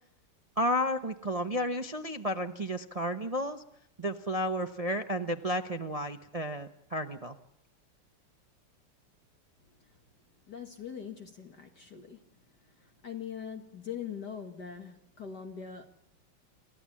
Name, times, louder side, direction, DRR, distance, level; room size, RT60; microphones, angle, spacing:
voice 1, 0.6-3.6 4.0-7.4, equal, 50° right, 0.4 m, -32 dB
voice 2, 10.5-12.3 12.6-15.8, left 7 dB, 50° left, 2.1 m, -42 dB
28.5 x 15.0 x 8.6 m
omnidirectional pair, 2.4 m